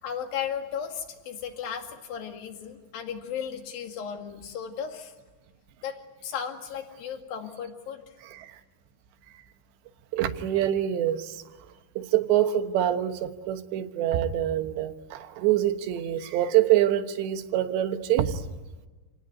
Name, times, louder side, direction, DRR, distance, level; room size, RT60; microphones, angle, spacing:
voice 1, 0.0-5.1 5.8-8.0, left 8 dB, 60° left, 5 dB, 3.7 m, -35 dB
voice 2, 8.2-8.6 10.1-11.4 12.0-18.5, right 12 dB, 90° right, 8 dB, 3.4 m, -25 dB
29.0 x 18.5 x 9.5 m, 1.3 s
omnidirectional pair, 4.9 m